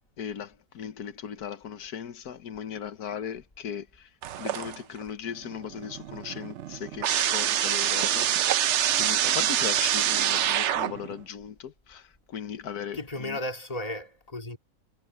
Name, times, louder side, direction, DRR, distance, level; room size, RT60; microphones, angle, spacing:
voice 1, 0.2-4.1 4.4-8.3 9.0-13.4, left 8 dB, 90° left, 1.7 m, -37 dB
sound 1, 4.2-5.0 5.4-11.2, right 11 dB, 60° right, 0.8 m, -26 dB
voice 2, 12.9-14.6, left 1 dB, 25° left, 2.5 m, -34 dB
omnidirectional pair, 1.6 m